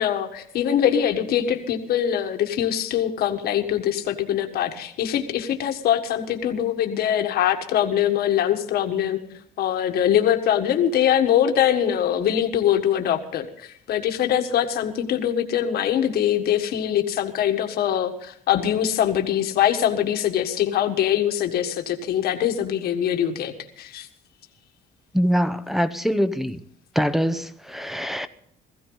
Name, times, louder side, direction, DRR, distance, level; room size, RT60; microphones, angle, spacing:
voice 1, 0.0-9.2 9.6-24.1, left 10 dB, 70° left, 1.6 m, -23 dB
voice 2, 25.1-26.6 26.9-28.3, equal, ahead, 0.9 m, -23 dB
17.5 x 15.0 x 4.0 m
cardioid pair, 110°, 17 cm